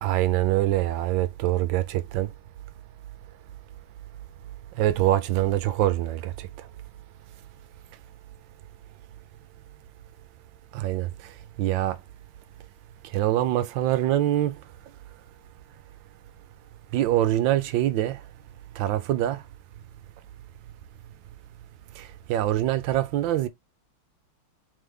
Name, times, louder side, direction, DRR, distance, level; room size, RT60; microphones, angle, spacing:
voice 1, 0.0-2.3 4.8-6.7 10.7-11.3 11.6-12.0 13.1-14.6 16.9-18.2 18.8-19.4 22.0-23.5, right 13 dB, 75° right, 1.2 m, -24 dB
3.6 x 3.6 x 3.3 m
omnidirectional pair, 2.3 m